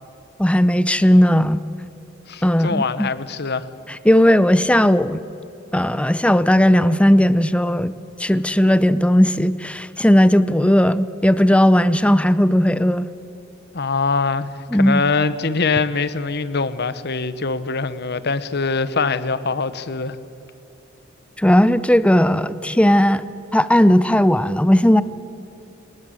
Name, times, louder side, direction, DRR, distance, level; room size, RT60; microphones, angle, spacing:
voice 1, 0.4-1.6 2.4-3.1 3.9-5.2 5.7-7.9 8.2-13.1 14.7-15.0 21.4-23.2 23.5-25.0, equal, 5° left, 15 dB, 0.6 m, -16 dB
voice 2, 2.3-3.7 13.7-20.2, left 4 dB, 55° left, 14 dB, 1.0 m, -23 dB
29.0 x 19.0 x 7.8 m, 2.7 s
head